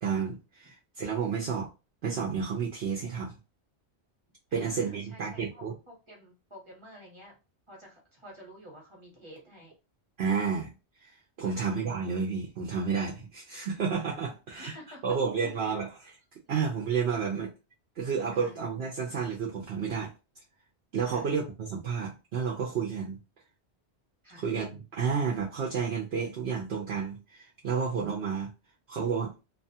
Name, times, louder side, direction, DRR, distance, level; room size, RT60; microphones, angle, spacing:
voice 1, 0.0-1.7 2.0-3.3 4.5-5.7 10.2-10.7 11.0-11.1 11.4-14.7 15.0-16.2 16.5-17.5 18.0-20.1 20.9-23.2 24.4-28.5 28.9-29.3, right 6 dB, 70° right, 0.9 m, -31 dB
voice 2, 4.5-7.4 7.7-9.7 11.4-11.6 14.6-15.0 15.3-15.7 16.4-16.6 18.3-18.5 21.0-21.3 24.2-24.5, equal, 25° right, 1.1 m, -50 dB
2.6 x 2.3 x 2.7 m
omnidirectional pair, 1.1 m